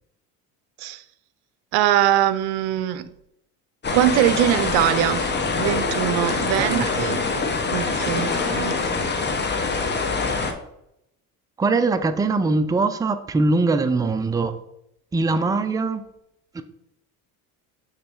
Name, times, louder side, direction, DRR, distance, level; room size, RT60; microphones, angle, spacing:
voice 1, 1.7-3.1 3.9-5.3 5.6-7.2 7.7-8.7, right 12 dB, 60° right, 14 dB, 0.6 m, -22 dB
sound 1, 3.8-10.5, left 4 dB, 25° left, 1.0 m, -24 dB
voice 2, 6.6-7.1 11.6-14.6 15.1-16.0 16.5-16.6, right 3 dB, 10° right, 9 dB, 0.4 m, -22 dB
6.6 x 3.2 x 4.5 m, 0.80 s
supercardioid pair, 80°, 43 cm